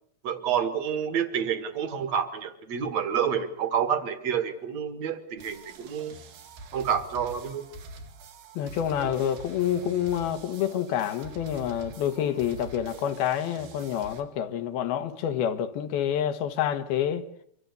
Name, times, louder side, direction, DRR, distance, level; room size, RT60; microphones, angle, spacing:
voice 1, 0.2-6.2 6.7-7.7 9.0-9.3, right 8 dB, 50° right, 2.7 m, -29 dB
sound 1, 5.4-14.2, right 2 dB, 75° right, 4.6 m, -45 dB
voice 2, 8.6-17.3, left 9 dB, 70° left, 3.0 m, -28 dB
26.0 x 25.0 x 6.8 m
omnidirectional pair, 4.7 m